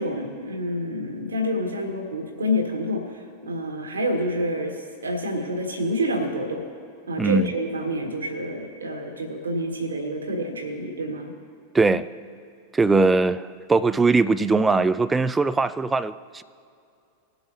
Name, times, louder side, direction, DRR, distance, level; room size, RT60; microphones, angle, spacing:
voice 1, 0.0-6.6 7.1-11.4, equal, 75° right, 1.7 m, -28 dB
voice 2, 7.2-7.5 11.7-12.1 12.7-16.4, right 3 dB, 10° right, 0.4 m, -20 dB
21.0 x 7.9 x 2.8 m
figure-of-eight pair, 90°, 0 cm